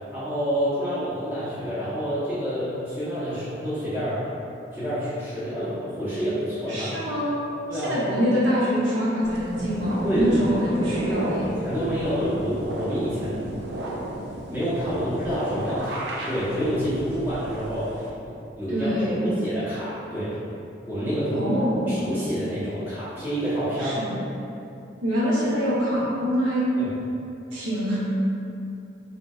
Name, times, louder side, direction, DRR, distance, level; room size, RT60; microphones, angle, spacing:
voice 1, 0.1-4.3 4.7-7.0 7.7-8.0 10.0-10.5 11.4-13.4 14.5-20.4 20.9-21.5 21.9-24.0 26.8-26.9, equal, 10° right, -13 dB, 0.9 m, -28 dB
voice 2, 6.7-7.4 7.7-11.5 18.7-19.2 21.3-21.9 23.8-24.1 25.0-26.6 27.5-28.0, equal, 85° right, -9 dB, 1.0 m, -24 dB
sound 1, 9.2-18.1, right 1 dB, 60° right, 0.4 m, -34 dB
3.7 x 2.6 x 2.4 m, 2.7 s
head